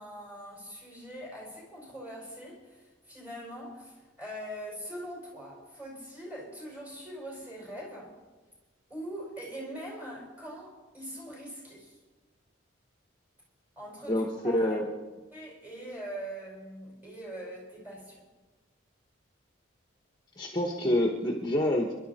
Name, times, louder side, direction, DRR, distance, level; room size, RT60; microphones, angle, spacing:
voice 1, 0.0-8.1 8.9-12.0 13.8-14.8 15.3-18.3 20.5-20.6, equal, 10° right, -4 dB, 5.3 m, -42 dB
voice 2, 14.1-15.0 20.4-21.9, left 1 dB, 20° left, 1 dB, 1.2 m, -27 dB
27.5 x 12.0 x 4.3 m, 1.2 s
head